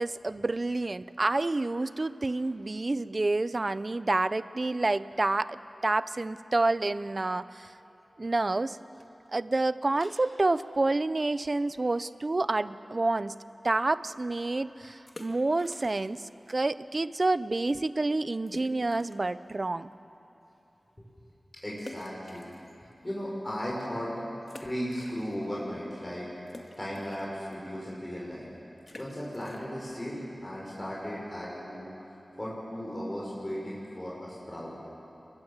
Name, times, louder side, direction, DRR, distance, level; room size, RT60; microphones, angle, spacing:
voice 1, 0.0-7.7 8.2-8.8 9.3-13.3 13.6-19.9, right 2 dB, 45° right, 14 dB, 0.7 m, -28 dB
sound 1, 15.0-16.3 16.6-16.7 17.3-17.4 17.6-17.7 18.5-19.4 19.9-20.0 21.8-23.1 23.6-23.7 24.4-25.6 25.9-31.4, left 2 dB, 45° left, 2.0 m, -50 dB
voice 2, 21.6-22.5 22.8-24.1 24.6-26.3 26.8-28.5 28.9-31.9 32.3-34.7, equal, 25° left, -5 dB, 6.2 m, -36 dB
29.5 x 22.0 x 7.4 m, 2.9 s
wide cardioid pair, 55°, 0 cm